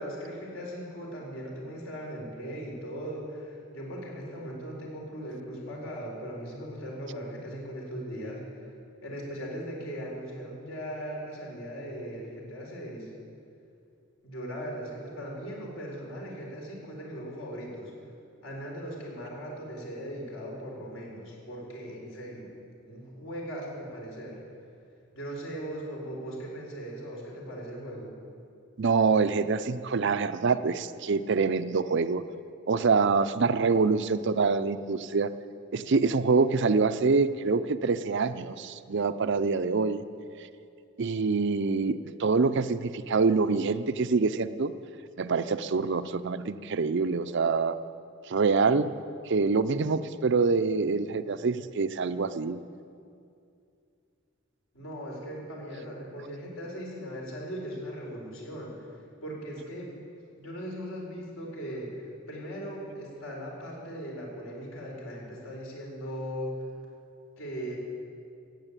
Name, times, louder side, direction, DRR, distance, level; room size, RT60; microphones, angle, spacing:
voice 1, 0.0-8.4 9.0-13.1 14.2-17.9 18.4-22.5 22.8-24.4 25.1-28.1 54.7-58.7 59.2-59.9 60.4-61.9 62.3-66.6 67.4-67.8, equal, 80° left, -2 dB, 4.4 m, -39 dB
voice 2, 28.8-32.3 32.7-35.3 35.7-40.0 41.0-44.7 45.2-47.8 48.3-48.9 49.3-52.6, right 4 dB, 60° right, 12 dB, 0.5 m, -25 dB
15.5 x 9.1 x 8.8 m, 2.5 s
head